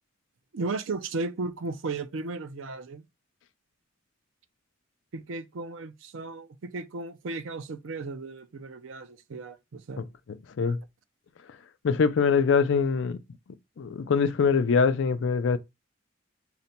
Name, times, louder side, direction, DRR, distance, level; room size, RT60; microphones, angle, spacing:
voice 1, 0.5-3.0 5.1-10.0, right 3 dB, 75° right, 0.5 m, -35 dB
voice 2, 11.8-13.2 13.8-15.6, left 5 dB, 65° left, 0.4 m, -23 dB
4.0 x 2.1 x 4.1 m
head